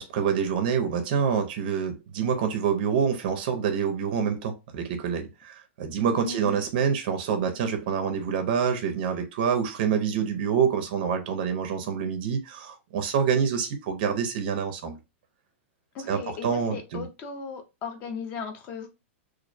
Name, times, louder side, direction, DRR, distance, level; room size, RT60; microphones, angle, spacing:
voice 1, 0.0-15.0 16.1-17.1, right 7 dB, 40° right, 0.4 m, -26 dB
voice 2, 6.2-6.7 15.9-18.9, left 5 dB, 25° left, 0.4 m, -37 dB
2.3 x 2.0 x 2.5 m
supercardioid pair, 170°, 7 cm